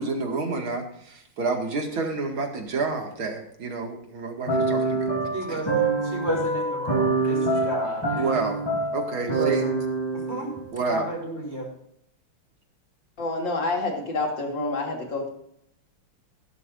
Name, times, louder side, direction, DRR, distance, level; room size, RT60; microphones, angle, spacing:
voice 1, 0.0-5.1 5.5-5.6 7.5-7.6 8.2-8.6 8.9-9.6 10.7-11.1, right 3 dB, 80° right, 2 dB, 3.0 m, -29 dB
sound 1, 4.5-10.8, right 3 dB, 10° left, 3.9 m, -25 dB
voice 2, 5.3-8.0 9.2-9.8 10.1-10.5 10.8-11.7, right 1 dB, 35° right, 0 dB, 4.8 m, -33 dB
voice 3, 13.2-15.3, left 3 dB, 65° left, 0 dB, 3.5 m, -28 dB
16.5 x 12.0 x 2.6 m, 0.71 s
omnidirectional pair, 2.2 m